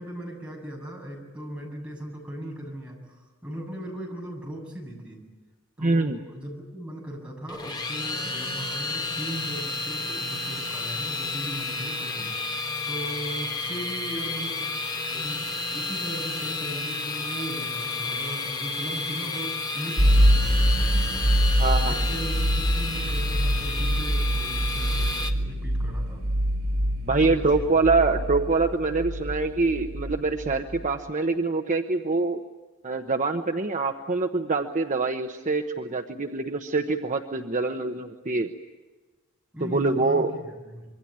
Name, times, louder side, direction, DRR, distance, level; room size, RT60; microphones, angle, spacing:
voice 1, 0.0-5.2 5.8-12.3 12.9-21.1 21.8-26.2 27.1-27.9 39.5-40.9, equal, 5° right, -1 dB, 7.6 m, -38 dB
voice 2, 5.8-6.2 21.6-22.0 27.0-32.4 32.8-38.5 39.6-40.3, right 3 dB, 40° right, 5 dB, 1.0 m, -25 dB
sound 1, 7.5-25.3, left 3 dB, 20° left, 1.8 m, -31 dB
sound 2, 20.0-30.9, equal, 70° right, 3.4 m, -25 dB
26.0 x 23.5 x 8.8 m, 1.2 s
head